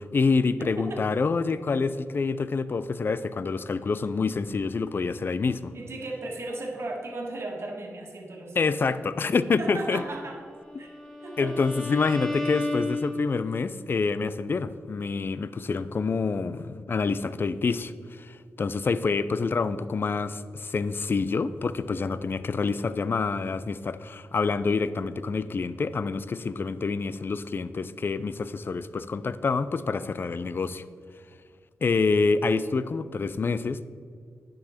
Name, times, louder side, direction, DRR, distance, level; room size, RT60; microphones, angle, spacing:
voice 1, 0.0-5.7 8.6-10.0 11.4-30.8 31.8-33.9, left 4 dB, 45° left, 15 dB, 0.4 m, -27 dB
voice 2, 0.6-1.0 5.7-9.0 9.6-10.4 10.8-10.9 11.2-11.5, right 2 dB, 55° right, 0 dB, 1.6 m, -36 dB
Bowed string instrument, 10.5-13.6, left 2 dB, 5° left, 1.9 m, -33 dB
10.0 x 6.3 x 4.3 m, 2.2 s
wide cardioid pair, 90°, 5 cm